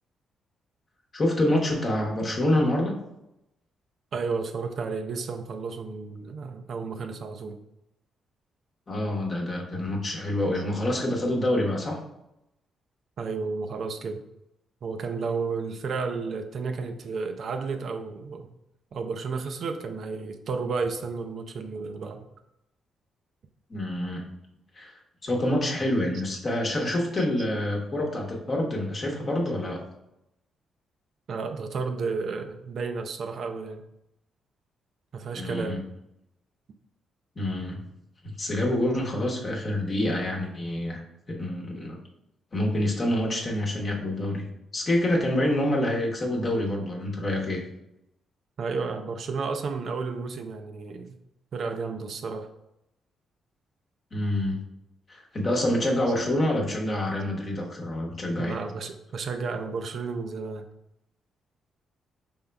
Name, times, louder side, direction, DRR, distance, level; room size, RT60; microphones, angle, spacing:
voice 1, 1.1-2.9 8.9-12.0 23.7-24.2 24.7-29.8 35.4-35.8 37.4-37.8 38.4-41.0 41.3-42.0 42.5-44.5 44.7-47.6 54.1-54.6 55.1-58.6, left 1 dB, 35° left, 0 dB, 0.9 m, -27 dB
voice 2, 4.1-7.6 13.2-14.2 14.8-18.5 18.9-22.3 27.2-27.3 31.3-33.8 35.1-35.8 48.6-51.2 51.5-52.5 58.4-60.7, right 4 dB, 55° right, 6 dB, 0.4 m, -32 dB
5.0 x 3.5 x 2.2 m, 0.86 s
cardioid pair, 125°, 0 cm